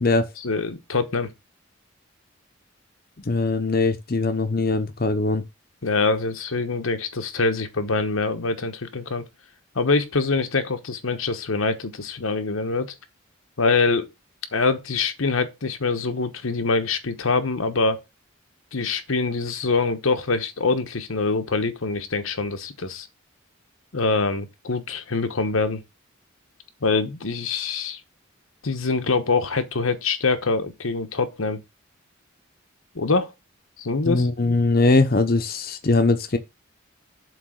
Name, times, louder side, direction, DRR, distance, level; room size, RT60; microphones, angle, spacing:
voice 1, 0.4-1.3 5.8-9.2 9.7-12.9 13.6-14.1 14.5-18.0 18.7-23.1 23.9-25.8 26.8-28.0 28.6-31.6 32.9-33.3 33.8-34.3, left 3 dB, 85° left, 1.0 m, -24 dB
voice 2, 3.2-5.4 34.0-36.4, left 3 dB, 45° left, 0.8 m, -21 dB
7.6 x 3.4 x 6.4 m
head